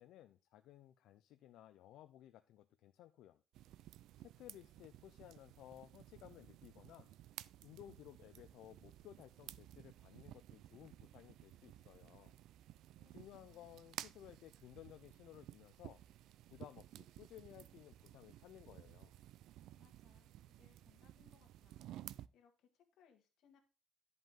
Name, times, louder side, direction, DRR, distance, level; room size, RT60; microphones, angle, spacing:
voice 1, 0.0-3.4 4.2-7.1 7.6-12.4 13.1-16.0 16.5-19.1, left 12 dB, 85° left, 9 dB, 0.5 m, -58 dB
sound 1, 3.5-22.3, right 13 dB, 80° right, 0.3 m, -56 dB
voice 2, 13.0-13.8 19.7-23.6, left 7 dB, 70° left, 4 dB, 1.8 m, -72 dB
11.0 x 5.4 x 3.6 m, 0.32 s
cardioid pair, 170°, 0 cm